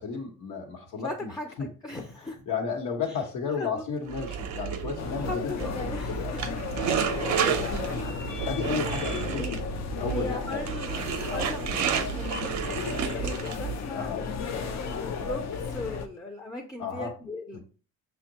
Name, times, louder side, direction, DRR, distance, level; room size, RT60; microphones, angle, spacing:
voice 1, 0.0-1.3 1.6-1.7 2.2-6.3 7.5-9.6 10.0-10.6 11.3-11.5 13.9-14.2 16.8-17.1 17.5-17.6, left 5 dB, 85° left, 1 dB, 1.0 m, -33 dB
voice 2, 1.0-2.4 3.5-3.8 5.1-6.4 7.3-7.5 9.3-9.5 10.1-10.9 11.2-17.6, left 2 dB, 15° left, 3 dB, 0.5 m, -38 dB
sound 1, 4.1-13.8, right 8 dB, 65° right, 0.5 m, -31 dB
sound 2, 5.0-16.1, left 5 dB, 60° left, 0.5 m, -34 dB
5.2 x 2.2 x 2.8 m, 0.38 s
cardioid pair, 90°, 30 cm